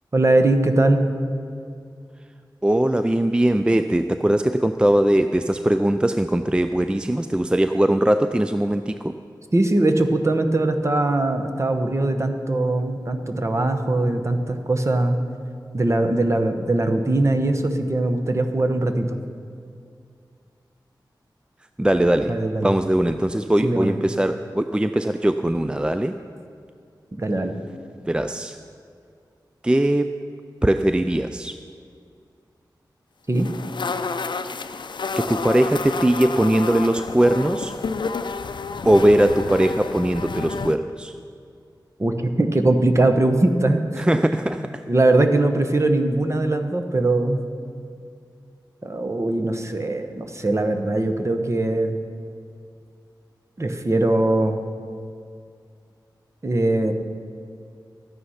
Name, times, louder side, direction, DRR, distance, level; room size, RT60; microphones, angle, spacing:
voice 1, 0.1-1.1 9.5-15.2 15.7-19.2 22.3-22.7 23.6-23.9 27.1-27.5 33.3-33.5 42.0-44.0 44.9-47.4 48.8-52.0 53.6-54.6 56.4-56.9, right 2 dB, 35° right, 6 dB, 1.0 m, -21 dB
voice 2, 2.6-9.1 21.8-26.1 28.1-28.6 29.6-30.2 30.6-31.6 35.2-37.7 38.9-41.1 44.0-44.8, right 1 dB, 10° right, 9 dB, 0.4 m, -20 dB
sound 1, 33.4-40.8, left 4 dB, 75° left, 0.5 m, -30 dB
12.5 x 9.4 x 5.7 m, 2.3 s
wide cardioid pair, 65°, 8 cm